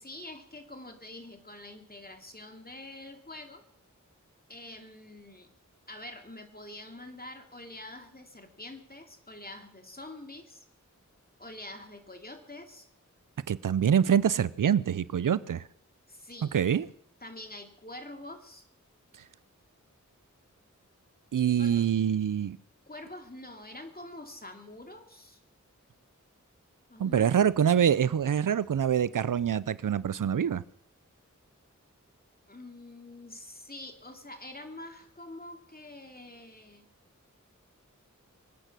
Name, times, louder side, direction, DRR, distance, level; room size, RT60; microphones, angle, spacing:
voice 1, 0.0-3.6 4.5-5.5 5.9-10.6 11.4-12.9 16.1-16.5 17.2-18.6 21.6-21.9 22.9-25.4 26.9-27.4 32.5-36.8, left 1 dB, 30° left, 4 dB, 2.7 m, -46 dB
voice 2, 13.5-15.6 16.5-16.9 21.3-22.6 27.0-30.6, right 8 dB, 80° right, 19 dB, 0.5 m, -25 dB
24.0 x 9.1 x 6.1 m, 0.70 s
wide cardioid pair, 40°, 31 cm